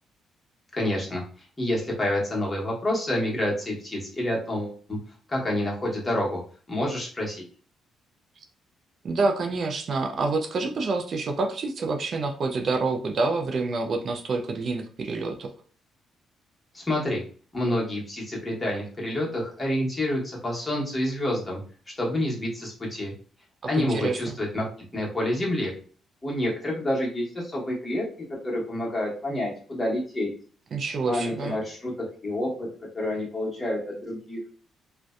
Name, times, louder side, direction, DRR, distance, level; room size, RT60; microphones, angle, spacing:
voice 1, 0.7-1.2 1.6-5.0 5.3-6.4 6.7-7.4 16.7-17.2 17.5-21.6 22.0-23.1 23.7-24.7 24.9-25.7 26.2-28.0 28.4-30.3 31.1-32.7 32.9-34.4, left 1 dB, 20° left, -3 dB, 1.1 m, -28 dB
voice 2, 9.0-15.5 23.7-24.4 30.7-31.6, right 3 dB, 50° right, 4 dB, 0.3 m, -27 dB
2.5 x 2.1 x 2.4 m, 0.43 s
cardioid pair, 90°, 0 cm